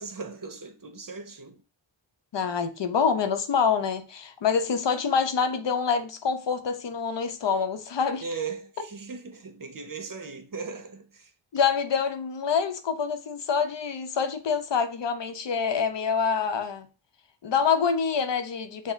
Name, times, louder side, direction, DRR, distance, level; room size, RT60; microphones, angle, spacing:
voice 1, 0.0-1.6 8.2-11.3, right 4 dB, 45° right, 0.8 m, -38 dB
voice 2, 2.3-8.2 11.5-16.9 17.4-18.9, left 6 dB, 65° left, 0.7 m, -26 dB
6.2 x 2.1 x 3.5 m
cardioid pair, 50°, 46 cm